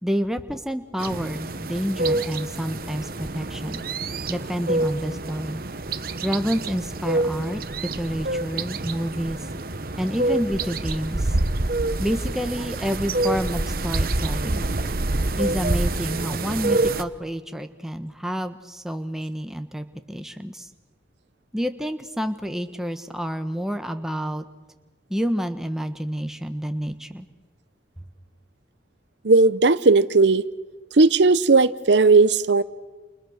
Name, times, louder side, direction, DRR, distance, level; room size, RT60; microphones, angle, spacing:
voice 1, 0.0-3.8 4.3-5.6 6.2-7.6 7.9-9.4 9.9-11.4 12.0-14.7 15.3-20.7 21.5-24.4 25.1-27.3, equal, ahead, 7 dB, 1.2 m, -29 dB
sound 1, 1.0-17.0, right 2 dB, 50° right, 1.1 m, -27 dB
voice 2, 29.2-30.4 30.9-32.6, right 3 dB, 75° right, 15 dB, 0.8 m, -16 dB
29.0 x 29.0 x 6.5 m, 1.3 s
head